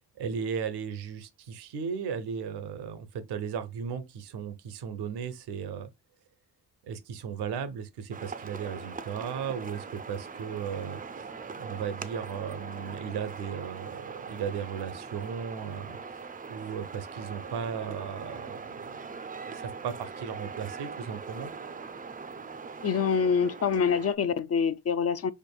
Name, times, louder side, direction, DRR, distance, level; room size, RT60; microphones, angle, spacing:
voice 1, 0.2-5.9 6.8-11.0 11.6-16.0 16.5-18.9 19.4-21.5, right 7 dB, 80° right, 0.6 m, -36 dB
sound 1, 8.1-24.2, right 5 dB, 25° right, 0.4 m, -41 dB
voice 2, 22.8-25.3, left 6 dB, 40° left, 0.4 m, -26 dB
4.6 x 2.5 x 2.2 m
supercardioid pair, 50°, 39 cm